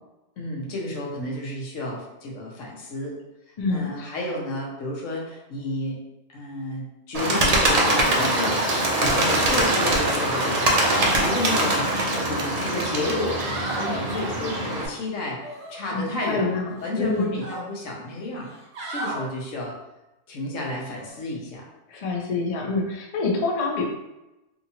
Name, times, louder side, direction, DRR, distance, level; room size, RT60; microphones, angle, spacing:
voice 1, 0.4-3.1 3.7-6.0 6.3-11.8 12.2-18.5 18.9-19.7 20.3-21.7, left 1 dB, 80° left, -2 dB, 1.1 m, -31 dB
voice 2, 3.6-4.2 15.9-17.4 21.9-23.8, left 3 dB, 50° left, 0 dB, 0.4 m, -26 dB
Bird, 7.1-14.9, right 1 dB, 75° right, 0.3 m, -23 dB
sound 1, 12.0-12.2 12.6-12.7 13.2-14.0 15.4-16.4 16.7-17.6 18.4-19.2 20.9-21.1, right 2 dB, 50° right, 0.7 m, -35 dB
2.7 x 2.7 x 2.7 m, 0.97 s
omnidirectional pair, 1.3 m